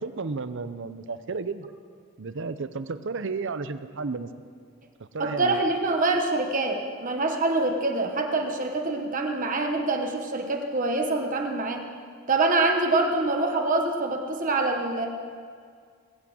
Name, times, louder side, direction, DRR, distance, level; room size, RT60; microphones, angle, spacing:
voice 1, 0.0-1.7 2.2-4.3 5.0-5.6, right 4 dB, 55° right, 12 dB, 0.6 m, -33 dB
voice 2, 5.2-11.8 12.3-15.1, right 2 dB, 35° right, 3 dB, 1.1 m, -25 dB
19.0 x 8.5 x 7.7 m, 2.1 s
head